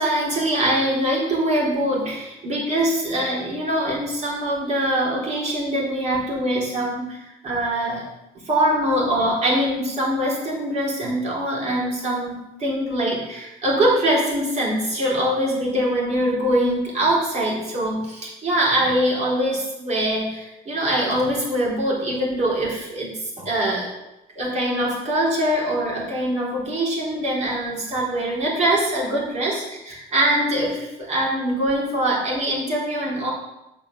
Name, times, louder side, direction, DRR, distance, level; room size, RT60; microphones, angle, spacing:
voice 1, 0.0-8.1 8.5-23.9 24.4-33.3, right 1 dB, 40° right, -4 dB, 3.9 m, -23 dB
7.9 x 5.6 x 6.5 m, 0.92 s
cardioid pair, 110°, 17 cm